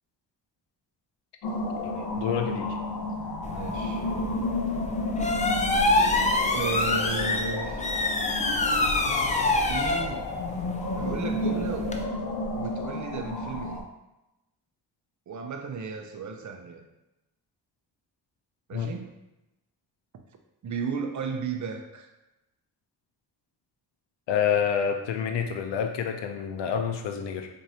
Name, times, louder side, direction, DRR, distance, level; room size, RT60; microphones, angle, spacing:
sound 1, 1.4-13.8, left 2 dB, 60° left, 0.8 m, -32 dB
voice 1, 1.8-2.8 18.7-18.9 24.3-27.5, left 7 dB, 90° left, 5 dB, 0.6 m, -28 dB
sound 2, 3.4-12.0, left 2 dB, 20° left, 0.4 m, -27 dB
voice 2, 3.5-4.1 6.5-7.9 9.7-10.3 10.9-11.9 12.5-13.9 15.3-16.9 18.7-19.1 20.6-22.1, right 5 dB, 45° right, 5 dB, 0.6 m, -34 dB
4.4 x 2.6 x 2.8 m, 0.95 s
cardioid pair, 75°, 41 cm